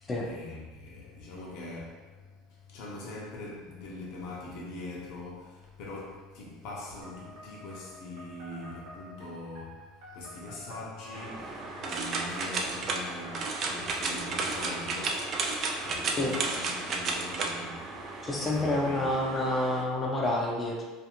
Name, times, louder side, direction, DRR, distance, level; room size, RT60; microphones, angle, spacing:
voice 1, 0.0-9.9 10.1-15.2 15.8-19.1, left 2 dB, 60° left, -4 dB, 0.6 m, -43 dB
sound 1, 7.0-14.2, left 1 dB, 85° right, 0.9 m, -49 dB
sound 2, 11.1-19.8, right 3 dB, 35° right, 0.3 m, -33 dB
voice 2, 18.2-20.8, left 1 dB, 20° left, -2 dB, 0.5 m, -28 dB
2.5 x 2.4 x 2.8 m, 1.3 s
supercardioid pair, 140°, 0 cm